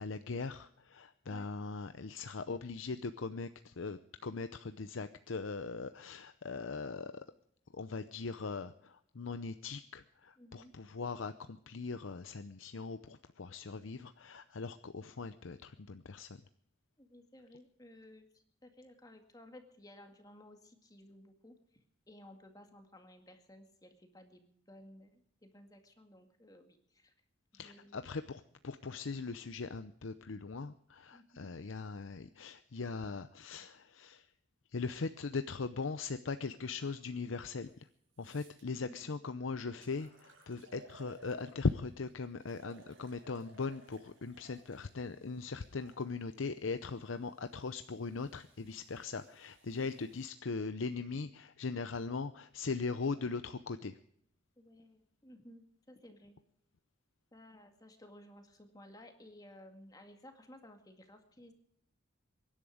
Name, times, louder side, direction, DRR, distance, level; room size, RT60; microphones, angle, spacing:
voice 1, 0.0-7.2 7.7-16.4 27.5-34.3 34.7-37.9 38.2-54.0, left 4 dB, 85° left, 11 dB, 0.7 m, -40 dB
voice 2, 10.4-10.7 17.0-21.6 22.1-27.1 27.6-28.0 31.1-31.5 38.7-39.1 40.6-40.8 54.6-56.4 57.3-61.5, left 1 dB, 20° left, 5 dB, 2.0 m, -56 dB
sound 1, 37.6-37.7 38.1-38.6 39.3-39.4 39.8-41.9 42.4-46.0 46.9-50.3, right 1 dB, 85° right, 6.5 m, -60 dB
24.0 x 11.0 x 5.0 m, 0.68 s
head